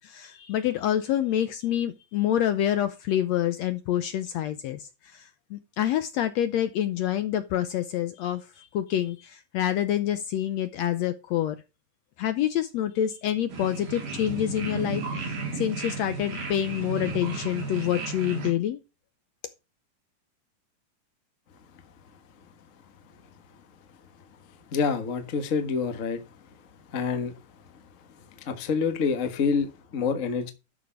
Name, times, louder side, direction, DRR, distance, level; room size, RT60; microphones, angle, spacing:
voice 1, 0.0-11.6 12.2-18.8, left 11 dB, 75° left, 1.7 m, -27 dB
sound 1, 13.5-18.5, right 4 dB, 70° right, 4.7 m, -34 dB
voice 2, 24.7-26.2 26.9-27.3 28.5-30.5, left 5 dB, 50° left, 0.9 m, -27 dB
12.0 x 6.4 x 4.5 m
omnidirectional pair, 3.7 m